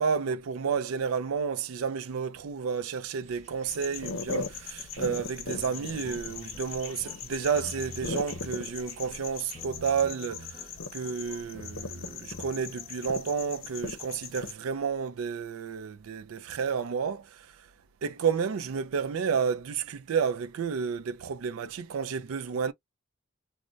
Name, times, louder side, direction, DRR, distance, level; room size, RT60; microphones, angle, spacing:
voice 1, 0.0-17.5 18.0-22.7, right 6 dB, 90° right, 0.4 m, -31 dB
sound 1, 3.2-9.6, right 3 dB, 30° right, 1.0 m, -54 dB
sound 2, 3.7-14.5, left 5 dB, 65° left, 0.7 m, -39 dB
sound 3, 5.5-13.5, left 1 dB, 25° left, 0.6 m, -48 dB
2.5 x 2.1 x 3.1 m
head